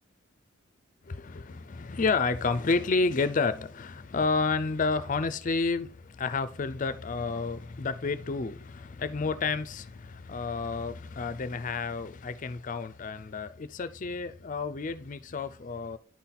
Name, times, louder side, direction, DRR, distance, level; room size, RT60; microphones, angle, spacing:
voice 1, 1.0-16.0, left 4 dB, 40° left, 0.5 m, -30 dB
10.5 x 4.0 x 4.2 m
head